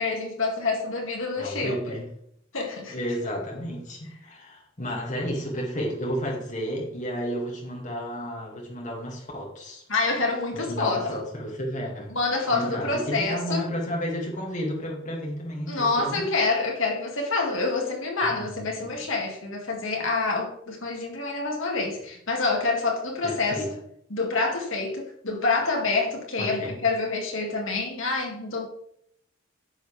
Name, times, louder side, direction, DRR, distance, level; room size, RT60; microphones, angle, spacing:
voice 1, 0.0-2.0 2.5-3.0 9.9-11.2 12.1-13.6 15.7-23.8 24.1-28.7, left 3 dB, 60° left, 2 dB, 1.9 m, -27 dB
voice 2, 1.4-2.0 2.9-9.8 10.5-12.2 12.5-16.2 18.2-18.9 23.2-23.7 26.4-26.8, equal, 35° left, -1 dB, 2.2 m, -32 dB
9.7 x 6.6 x 3.4 m, 0.71 s
head